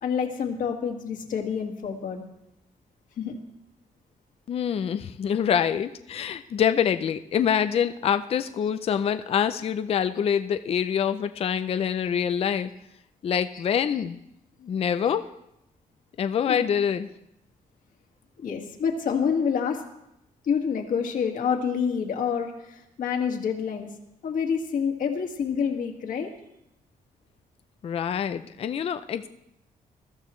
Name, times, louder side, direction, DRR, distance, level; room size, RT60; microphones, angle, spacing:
voice 1, 0.0-2.2 3.2-3.4 8.6-8.7 11.0-11.1 11.7-11.8 13.5-13.7 13.9-14.0 15.0-15.1 16.5-16.6 18.4-19.8 20.4-23.9 24.2-26.3, left 6 dB, 65° left, 3 dB, 1.9 m, -28 dB
voice 2, 4.5-12.7 13.2-14.2 14.6-15.2 16.2-17.1 27.8-29.3, left 8 dB, 45° left, 10 dB, 0.5 m, -25 dB
21.0 x 14.0 x 3.2 m, 0.84 s
wide cardioid pair, 160°, 15 cm